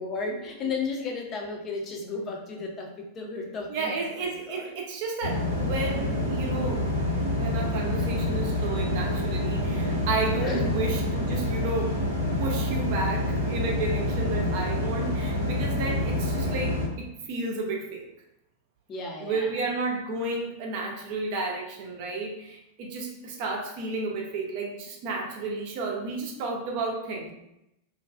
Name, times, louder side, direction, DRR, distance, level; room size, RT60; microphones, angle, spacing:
voice 1, 0.0-4.7 8.0-8.1 10.4-10.6 18.9-19.5, left 4 dB, 30° left, 0 dB, 0.6 m, -34 dB
voice 2, 3.7-6.8 7.3-11.9 12.4-18.1 19.2-27.3, right 3 dB, 50° right, 0 dB, 0.6 m, -32 dB
sound 1, 5.2-16.9, left 1 dB, 85° left, 1.1 m, -27 dB
2.5 x 2.2 x 2.4 m, 0.85 s
figure-of-eight pair, 90°, 0 cm